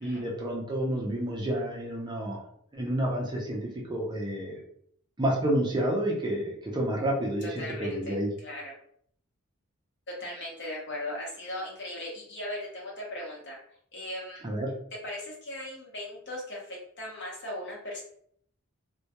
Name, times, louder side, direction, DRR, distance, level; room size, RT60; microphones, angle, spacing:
voice 1, 0.0-2.4 2.7-4.6 5.2-8.3 14.4-14.7, right 1 dB, 20° right, -3 dB, 0.4 m, -29 dB
voice 2, 7.4-8.7 10.2-13.6 13.9-14.4 15.0-18.0, left 1 dB, 50° left, -3 dB, 0.8 m, -38 dB
2.2 x 2.2 x 2.8 m, 0.65 s
head